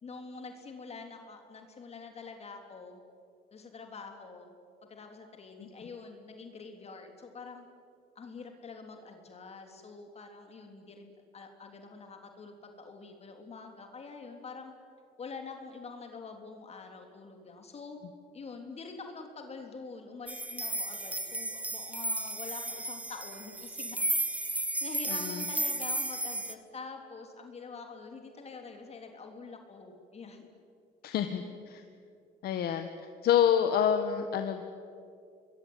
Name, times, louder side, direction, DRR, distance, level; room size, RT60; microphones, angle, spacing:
voice 1, 0.0-3.0 3.5-4.5 4.9-7.7 8.1-14.7 15.2-18.0 18.3-24.1 24.5-30.5, left 4 dB, 40° left, 4 dB, 3.4 m, -46 dB
sound 1, 20.3-26.5, right 1 dB, 10° right, 1.5 m, -34 dB
voice 2, 25.1-25.4 31.0-31.8 32.4-32.9 33.2-34.6, left 9 dB, 70° left, 7 dB, 1.7 m, -27 dB
27.0 x 22.0 x 9.5 m, 2.4 s
cardioid pair, 110°, 17 cm